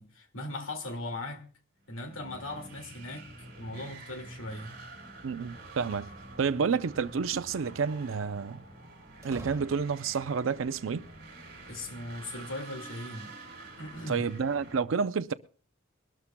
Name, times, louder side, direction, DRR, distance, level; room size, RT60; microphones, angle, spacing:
voice 1, 0.0-1.4 1.9-3.3 3.6-4.7 11.7-13.4 13.8-14.3, left 1 dB, 70° left, 2.1 m, -39 dB
sound 1, 1.9-14.8, right 2 dB, 50° right, 3.1 m, -48 dB
voice 2, 5.2-6.1 6.4-8.6 9.2-11.0 14.1-15.3, right 5 dB, 70° right, 0.5 m, -29 dB
sound 2, 5.8-6.8 9.2-10.3, right 1 dB, 15° right, 1.4 m, -48 dB
23.0 x 12.5 x 2.2 m
head